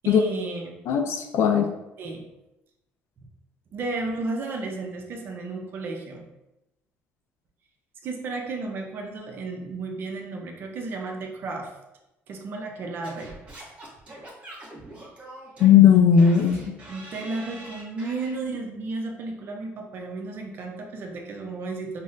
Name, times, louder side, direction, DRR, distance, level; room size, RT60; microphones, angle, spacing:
voice 1, 0.0-0.7 2.0-2.2 3.7-6.2 8.0-11.7 12.3-13.4 16.9-22.0, right 3 dB, 50° right, 2 dB, 0.6 m, -33 dB
voice 2, 0.9-1.7 15.6-16.8, left 8 dB, 65° left, 5 dB, 0.3 m, -17 dB
Singing / Scratching (performance technique), 13.0-18.4, right 1 dB, 25° right, 1.1 m, -43 dB
5.3 x 2.1 x 2.5 m, 0.94 s
cardioid pair, 140°, 5 cm